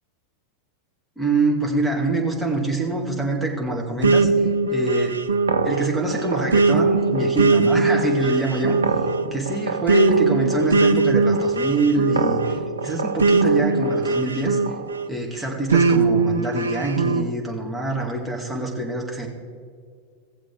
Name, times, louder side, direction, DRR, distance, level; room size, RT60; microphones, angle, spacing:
voice 1, 1.2-4.3 4.7-5.2 5.6-8.8 9.3-14.6 15.1-19.3, right 2 dB, ahead, -2 dB, 1.9 m, -25 dB
sound 1, 4.0-15.1 15.7-17.2, right 3 dB, 70° right, 0.5 m, -20 dB
17.5 x 7.4 x 3.7 m, 2.1 s
figure-of-eight pair, 90°, 0 cm